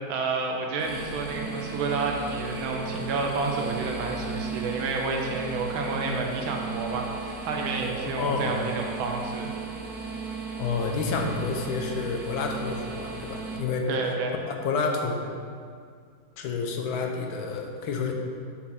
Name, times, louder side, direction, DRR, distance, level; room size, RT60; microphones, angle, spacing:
voice 1, 0.0-9.5 13.9-14.4, right 3 dB, 80° right, 1 dB, 1.7 m, -30 dB
sound 1, 0.8-13.6, right 4 dB, 25° right, 0.5 m, -36 dB
voice 2, 8.0-8.6 10.6-13.9 14.5-15.2 16.4-18.1, left 4 dB, 80° left, 2 dB, 1.5 m, -29 dB
6.4 x 4.4 x 5.6 m, 2.2 s
omnidirectional pair, 2.2 m